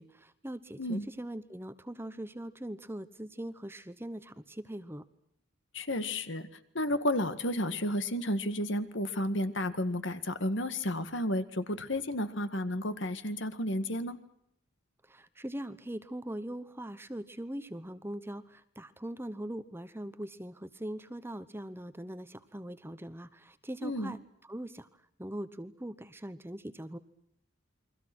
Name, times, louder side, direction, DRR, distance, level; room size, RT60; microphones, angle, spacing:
voice 1, 0.0-5.0 15.0-24.2 24.5-24.9 25.2-27.0, right 1 dB, 10° right, 12 dB, 1.0 m, -41 dB
voice 2, 5.7-6.5 6.7-14.2 23.8-24.1, left 1 dB, 60° left, 11 dB, 1.9 m, -32 dB
29.5 x 23.0 x 6.2 m, 0.75 s
head